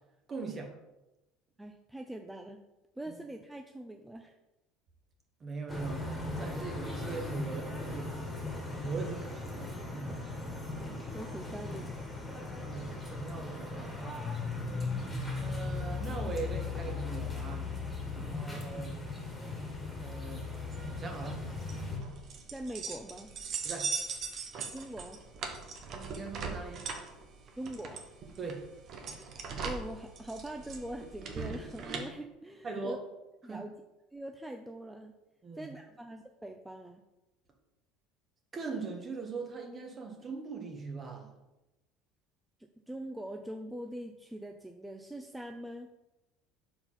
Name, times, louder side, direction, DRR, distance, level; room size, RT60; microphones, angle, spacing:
voice 1, 0.3-0.7 3.1-3.2 5.4-6.0 6.4-8.1 8.8-10.1 12.5-14.2 15.4-17.7 18.1-19.2 20.0-21.4 23.6-23.9 25.9-26.8 28.4-28.6 32.6-33.0 33.4-33.6 35.4-35.7 38.5-41.3, right 4 dB, 35° right, 3 dB, 1.4 m, -40 dB
voice 2, 1.6-2.6 3.0-4.4 10.8-11.9 18.1-18.6 22.5-23.3 24.7-25.2 27.6-28.0 29.6-33.0 33.4-33.7 34.1-35.2 35.5-37.0 42.9-45.9, right 1 dB, 10° right, 4 dB, 0.5 m, -43 dB
sound 1, 5.7-22.0, left 3 dB, 10° left, 1.9 m, -38 dB
sound 2, 20.7-32.0, right 5 dB, 50° right, 1.1 m, -40 dB
4.4 x 4.1 x 5.7 m, 0.98 s
hypercardioid pair, 80°, 0 cm